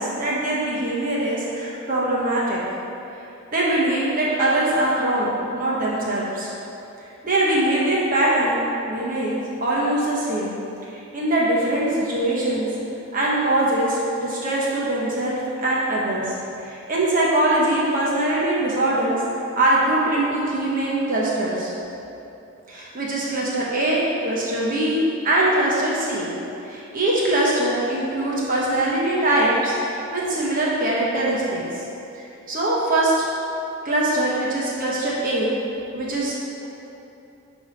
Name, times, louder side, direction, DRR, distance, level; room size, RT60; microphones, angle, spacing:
voice 1, 0.0-2.6 3.5-6.5 7.2-10.5 10.9-12.7 13.1-19.2 19.5-21.7 22.7-26.3 26.6-31.6 32.5-33.3 33.8-35.5 35.9-36.4, right 1 dB, 40° right, -5 dB, 1.1 m, -22 dB
9.7 x 3.6 x 5.0 m, 2.9 s
head